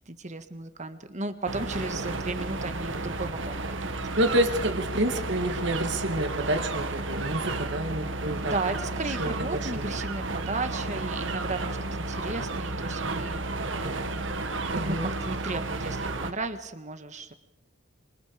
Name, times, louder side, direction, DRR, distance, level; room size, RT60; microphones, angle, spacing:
voice 1, 0.0-4.3 8.4-13.5 13.8-14.3 14.8-17.3, right 3 dB, 40° right, 9 dB, 1.8 m, -35 dB
sound 1, 1.5-16.3, right 2 dB, 85° right, 1.9 m, -32 dB
voice 2, 4.2-8.5 9.1-9.9 14.7-15.1, right 1 dB, 65° right, 6 dB, 2.7 m, -28 dB
26.5 x 26.0 x 5.2 m, 0.93 s
head